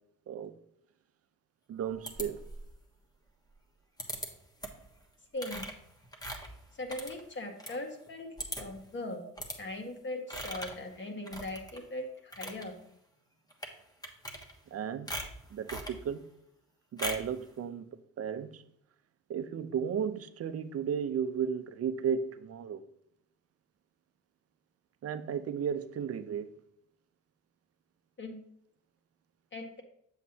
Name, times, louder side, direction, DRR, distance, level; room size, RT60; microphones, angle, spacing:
voice 1, 1.7-2.4 14.7-15.1 15.5-16.2 16.9-17.9 18.2-18.6 19.3-22.8 25.0-26.5, right 7 dB, 50° right, 12 dB, 0.6 m, -34 dB
sound 1, 2.1-2.8 4.0-4.3 4.6-4.9 5.4-7.8 8.1-8.2 8.4-8.8 9.4-9.6 10.3-10.8 11.3-11.8 12.2-12.7 13.5-13.7 14.0-14.7 15.1-16.0 17.0-17.3, equal, 15° left, 1.3 m, -40 dB
voice 2, 5.3-5.7 6.8-8.3 8.6-9.2 9.6-12.8 28.2-28.4 29.5-29.8, left 1 dB, 40° left, 3 dB, 1.7 m, -39 dB
7.4 x 7.3 x 2.8 m, 0.72 s
cardioid pair, 90°, 30 cm